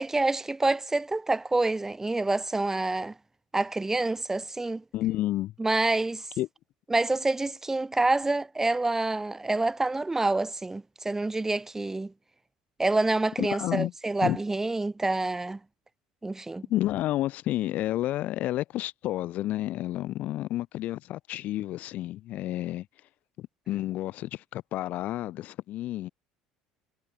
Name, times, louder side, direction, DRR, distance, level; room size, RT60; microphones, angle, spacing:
voice 1, 0.0-3.1 3.5-4.8 5.6-6.2 6.9-12.1 12.8-15.6 16.2-16.6, right 2 dB, 15° right, 0.8 m, -27 dB
voice 2, 4.9-5.5 6.4-6.5 13.4-13.9 14.2-14.4 16.7-22.9 23.4-26.1, left 14 dB, 60° left, 1.5 m, -30 dB
hypercardioid pair, 70°, 3 cm